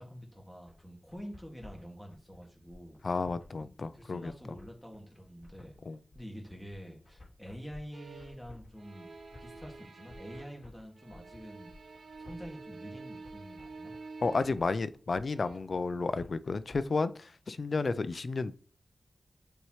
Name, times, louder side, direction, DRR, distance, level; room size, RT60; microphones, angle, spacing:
voice 1, 0.0-3.0 3.6-5.7 6.1-9.1 9.4-11.7 12.2-13.9, equal, 5° left, 1.9 m, -47 dB
sound 1, 0.7-16.8, left 2 dB, 40° left, 2.6 m, -55 dB
voice 2, 3.0-4.3 5.9-6.0 14.2-18.6, left 3 dB, 60° left, 0.4 m, -32 dB
sound 2, 7.9-8.5 8.7-10.7 11.0-14.7 15.3-15.6, right 3 dB, 85° right, 0.9 m, -48 dB
7.9 x 4.2 x 3.1 m
wide cardioid pair, 70°, 0 cm